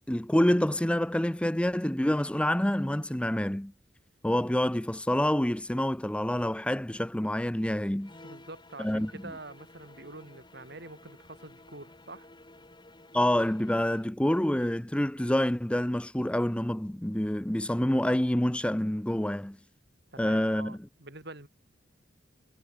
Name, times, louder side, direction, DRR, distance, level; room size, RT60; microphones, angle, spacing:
voice 1, 0.1-3.7 4.2-8.1 8.8-9.1 13.1-19.6 20.2-20.8, left 1 dB, 5° left, 0.6 m, -27 dB
sound 1, 8.0-14.1, left 2 dB, 25° left, 6.5 m, -53 dB
voice 2, 8.2-12.3 20.1-21.5, right 2 dB, 65° right, 6.1 m, -46 dB
head